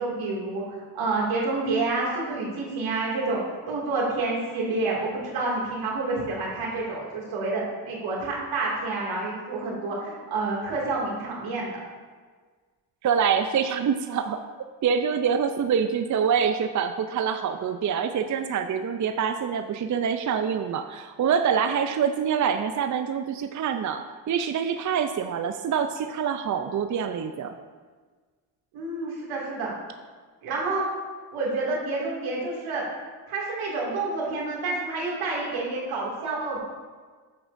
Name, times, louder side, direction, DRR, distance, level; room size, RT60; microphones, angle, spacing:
voice 1, 0.0-11.8 28.7-29.7 30.4-30.9 31.3-32.8 33.3-36.6, right 3 dB, 80° right, -4 dB, 2.5 m, -28 dB
voice 2, 13.0-14.4 14.8-27.6, right 7 dB, 40° right, 8 dB, 0.5 m, -25 dB
9.4 x 7.9 x 2.6 m, 1.5 s
supercardioid pair, 55°, 48 cm